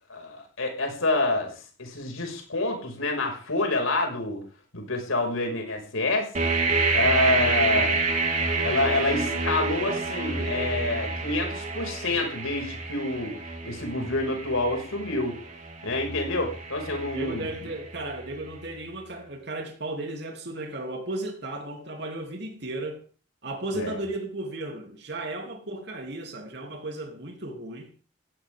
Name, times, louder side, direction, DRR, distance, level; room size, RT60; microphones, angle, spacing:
voice 1, 0.1-1.5 1.8-4.4 4.7-6.3 6.9-8.0 8.6-13.4 13.6-15.4 15.8-17.5 23.7-24.0, left 2 dB, 85° left, 6.0 m, -27 dB
sound 1, 6.3-18.1, right 3 dB, 35° right, 3.4 m, -28 dB
voice 2, 17.1-23.0 23.4-27.9, right 2 dB, 55° right, 3.2 m, -35 dB
18.0 x 16.5 x 3.7 m
head